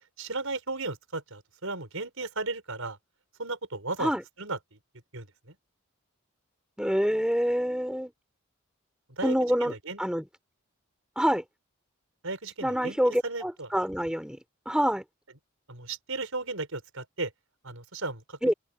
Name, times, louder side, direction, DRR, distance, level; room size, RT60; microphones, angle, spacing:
voice 1, 0.2-3.0 3.4-4.1 4.4-4.8 5.1-5.5 9.1-9.3 9.6-10.0 12.2-13.7 15.7-17.3 17.6-18.5, right 3 dB, 70° right, 5.1 m, -35 dB
voice 2, 6.8-8.1 9.2-10.3 11.2-11.4 12.6-14.4 14.7-15.0 18.4-18.5, equal, 5° right, 3.6 m, -26 dB
open air
head